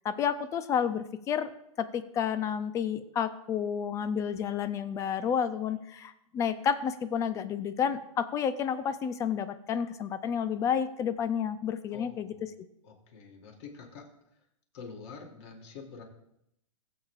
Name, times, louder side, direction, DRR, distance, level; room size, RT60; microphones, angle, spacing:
voice 1, 0.0-1.5 1.8-12.3, left 7 dB, 15° left, 13 dB, 0.4 m, -30 dB
voice 2, 11.9-12.5 12.8-14.1 14.7-16.0, left 5 dB, 50° left, 2 dB, 2.6 m, -46 dB
20.5 x 7.3 x 2.4 m, 0.79 s
hypercardioid pair, 145°, 18 cm